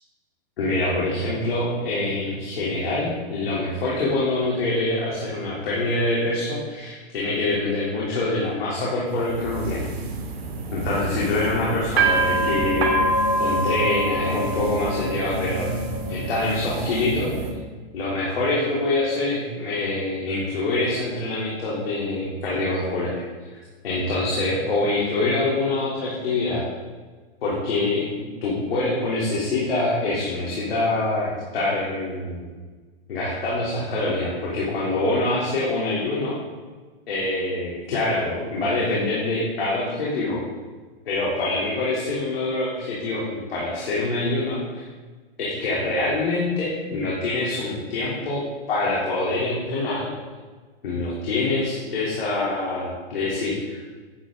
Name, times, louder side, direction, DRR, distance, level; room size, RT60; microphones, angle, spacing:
voice 1, 0.6-9.8 10.7-13.0 13.4-15.7 16.1-17.3 17.9-23.1 23.8-26.6 27.4-32.4 33.1-36.4 37.1-40.4 41.0-44.8 45.4-48.4 48.7-50.1 50.8-53.9, left 2 dB, 70° left, -6 dB, 3.2 m, -25 dB
sound 1, 9.1-17.5, right 2 dB, 90° right, 2.7 m, -26 dB
10.5 x 8.9 x 3.8 m, 1.4 s
hypercardioid pair, 165°, 31 cm